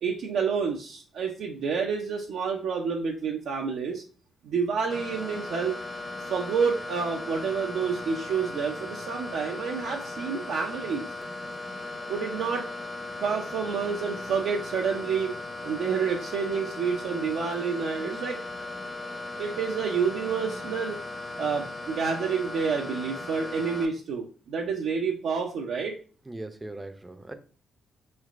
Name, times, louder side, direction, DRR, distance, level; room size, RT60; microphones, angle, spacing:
voice 1, 0.0-4.0 4.4-5.8 6.2-11.1 12.1-12.6 13.2-15.4 15.6-18.4 19.4-21.0 21.4-25.9, right 6 dB, 75° right, 0.4 m, -29 dB
sound 1, 4.9-23.9, left 2 dB, 30° left, 0.7 m, -37 dB
voice 2, 26.3-27.3, right 2 dB, 15° right, 0.4 m, -39 dB
3.2 x 3.1 x 2.4 m
supercardioid pair, 70°, 0 cm